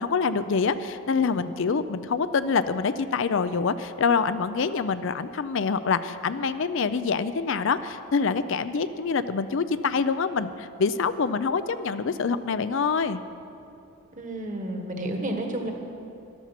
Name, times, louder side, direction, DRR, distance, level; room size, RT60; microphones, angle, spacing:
voice 1, 0.0-13.2, left 5 dB, 60° left, 12 dB, 0.5 m, -26 dB
voice 2, 14.2-15.7, right 1 dB, 35° right, 3 dB, 1.5 m, -31 dB
13.5 x 12.5 x 5.8 m, 2.7 s
head